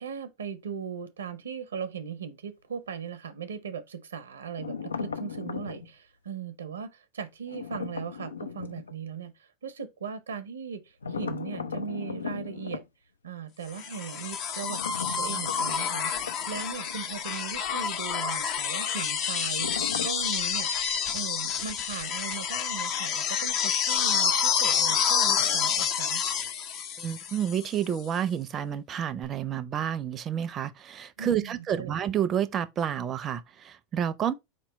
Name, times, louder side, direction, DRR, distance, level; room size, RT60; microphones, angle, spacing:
voice 1, 0.0-12.8 13.2-16.1 16.5-20.7 21.1-26.2 31.2-32.0, right 7 dB, 85° right, 0.6 m, -38 dB
sound 1, 4.6-5.9 7.5-8.9 11.0-12.9 14.6-17.0 17.3-17.4 19.6-20.3, left 6 dB, 90° left, 0.4 m, -37 dB
sound 2, 13.8-27.8 29.2-29.3, left 7 dB, 50° left, 0.7 m, -28 dB
voice 2, 27.0-34.3, right 9 dB, 35° right, 0.5 m, -30 dB
4.3 x 3.0 x 4.0 m
hypercardioid pair, 90°, 0 cm